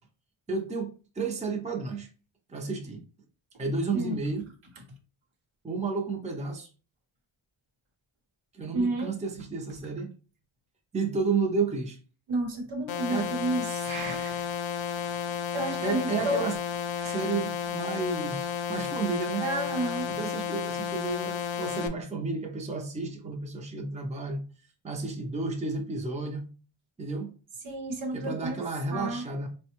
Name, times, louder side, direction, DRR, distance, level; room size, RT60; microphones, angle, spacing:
voice 1, 0.5-2.1 2.5-3.0 3.6-4.5 5.6-6.7 8.5-10.1 10.9-12.0 13.1-13.3 15.8-16.5 17.0-19.4 20.1-24.5 24.8-26.5 27.0-27.3 28.1-29.5, right 4 dB, 15° right, 0.5 m, -32 dB
voice 2, 8.7-9.1 12.3-14.4 15.5-16.4 17.0-17.2 19.4-20.1 27.6-28.6 28.9-29.3, right 2 dB, 80° right, 0.9 m, -31 dB
sound 1, 12.9-21.9, left 8 dB, 70° left, 0.6 m, -32 dB
4.2 x 2.2 x 2.9 m
wide cardioid pair, 155°, 48 cm